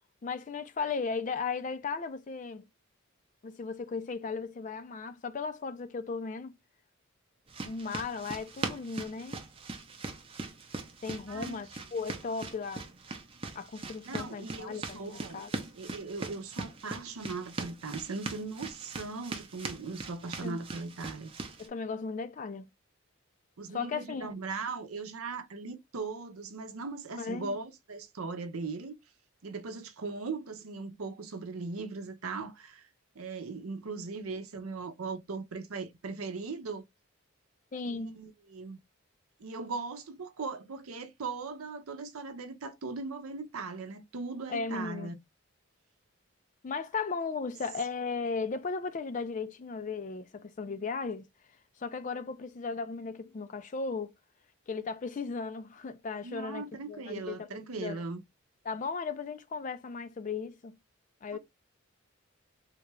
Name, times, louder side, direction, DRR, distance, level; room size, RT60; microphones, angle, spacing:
voice 1, 0.2-2.7 3.4-6.6 7.6-9.4 11.0-12.9 13.5-15.6 20.4-20.6 21.6-22.7 23.7-24.3 27.2-27.6 37.7-38.2 44.5-45.1 46.6-51.3 51.8-54.1 54.7-57.5 57.7-58.0 58.7-60.8 61.2-61.4, left 4 dB, 35° left, 0.3 m, -36 dB
sound 1, 7.5-21.7, right 3 dB, 25° right, 0.6 m, -41 dB
voice 2, 11.3-11.6 14.1-15.4 15.8-21.3 23.6-29.0 29.4-32.9 33.1-36.8 37.9-38.8 39.4-45.1 56.2-58.2 61.3-61.4, right 4 dB, 80° right, 0.6 m, -39 dB
3.6 x 2.3 x 3.0 m
head